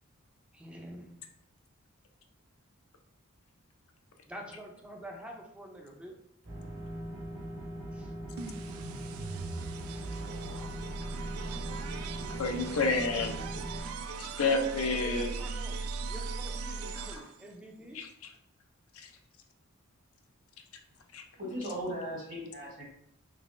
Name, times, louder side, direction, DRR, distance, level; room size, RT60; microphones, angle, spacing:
voice 1, 0.5-1.2 4.3-6.2 7.9-8.1 9.5-9.6 14.9-15.8 16.1-18.0, right 1 dB, 5° right, 0 dB, 0.5 m, -46 dB
sound 1, 6.4-13.8, right 1 dB, 60° right, 1.3 m, -41 dB
sound 2, 8.4-17.5, right 4 dB, 90° right, 0.3 m, -39 dB
voice 2, 12.3-13.4 14.2-15.3 17.0-17.2 17.9-18.1 19.0-19.1 21.1-21.2, left 3 dB, 80° left, 4 dB, 0.5 m, -30 dB
voice 3, 13.4-14.4 21.4-22.8, equal, 40° right, -2 dB, 1.1 m, -39 dB
3.4 x 3.1 x 2.5 m, 0.71 s
head